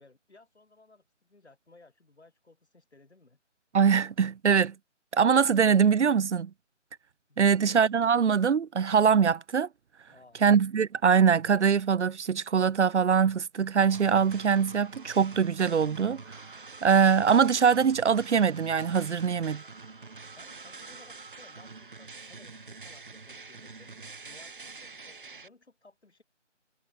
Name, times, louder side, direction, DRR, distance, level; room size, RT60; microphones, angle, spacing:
voice 1, 0.0-3.4 7.3-7.8 10.1-10.5 20.3-24.5 24.8-26.2, left 3 dB, 60° left, 8.0 m, -58 dB
voice 2, 3.7-4.7 5.1-6.5 7.4-9.7 10.4-16.2 16.8-19.6, right 6 dB, 65° right, 0.5 m, -23 dB
sound 1, 13.8-25.5, right 4 dB, 45° right, 5.0 m, -46 dB
figure-of-eight pair, 165°, 37 cm